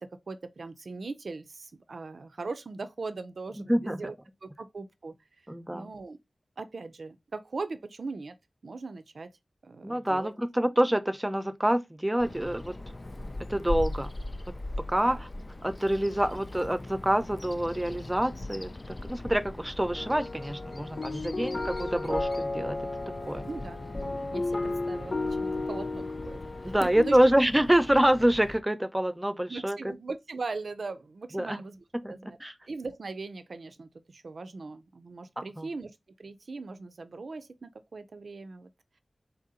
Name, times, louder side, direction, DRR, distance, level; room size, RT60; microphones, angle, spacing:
voice 1, 0.0-4.2 4.4-5.1 5.7-6.2 6.6-8.4 8.6-9.3 9.6-10.3 15.1-15.2 21.4-21.7 23.5-23.8 24.3-27.2 29.5-32.4 32.7-35.9 36.2-38.7, right 3 dB, 80° right, 0.4 m, -40 dB
voice 2, 3.7-4.1 5.5-5.9 9.8-12.7 13.5-14.1 14.8-15.3 15.6-22.8 23.3-23.5 26.6-29.8 31.3-31.6 32.0-32.1 32.4-32.5 35.6-35.7, right 1 dB, 15° right, 0.6 m, -26 dB
Bird vocalization bird call bird song, 12.2-28.6, left 1 dB, 40° left, 0.4 m, -40 dB
sound 1, 19.9-27.1, left 2 dB, 60° left, 0.9 m, -34 dB
3.9 x 2.7 x 3.7 m
wide cardioid pair, 55°, 0 cm